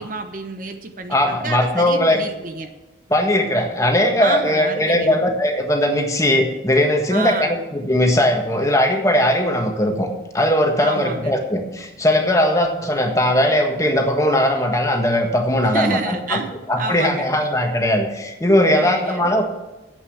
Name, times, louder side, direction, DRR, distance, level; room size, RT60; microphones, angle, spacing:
voice 1, 0.0-2.7 4.2-5.2 7.1-7.6 10.8-11.3 15.6-17.3 18.8-19.2, right 3 dB, 45° right, 7 dB, 1.0 m, -29 dB
voice 2, 1.1-2.2 3.1-10.1 10.3-16.4 16.7-19.4, left 1 dB, 15° left, 3 dB, 1.5 m, -19 dB
9.7 x 8.4 x 7.2 m, 1.1 s
head